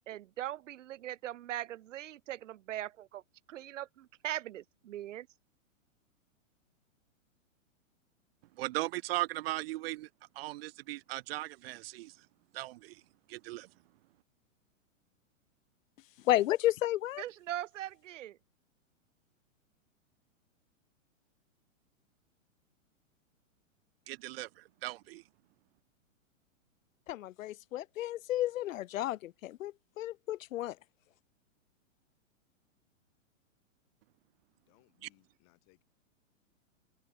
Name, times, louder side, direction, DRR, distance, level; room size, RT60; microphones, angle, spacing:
voice 1, 0.1-3.2 3.5-5.3 17.2-18.4, right 13 dB, 65° right, 1.5 m, -40 dB
voice 2, 8.6-10.1 10.4-12.1 12.5-13.0 13.3-13.7 24.1-25.2, right 18 dB, 45° right, 0.8 m, -38 dB
voice 3, 16.2-17.2 27.1-30.8, left 14 dB, 75° left, 0.7 m, -32 dB
voice 4, 34.5-35.8, left 39 dB, 40° left, 6.8 m, -68 dB
hypercardioid pair, 140°, 39 cm